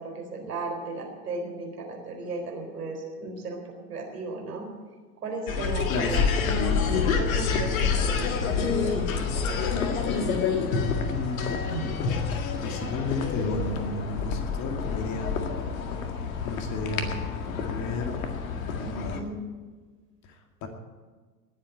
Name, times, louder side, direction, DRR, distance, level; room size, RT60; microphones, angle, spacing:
voice 1, 0.0-3.6 3.9-4.7 5.2-6.2 6.9-9.7 18.8-19.4, right 3 dB, 70° right, 1 dB, 4.3 m, -36 dB
sound 1, 5.5-19.2, left 5 dB, 55° left, 2.0 m, -28 dB
voice 2, 5.9-6.3 11.1-12.2 12.6-15.5 16.4-17.2 17.4-18.2 18.7-19.3 20.2-20.7, left 2 dB, 35° left, 5 dB, 2.4 m, -33 dB
19.0 x 7.8 x 9.1 m, 1.4 s
figure-of-eight pair, 90°, 48 cm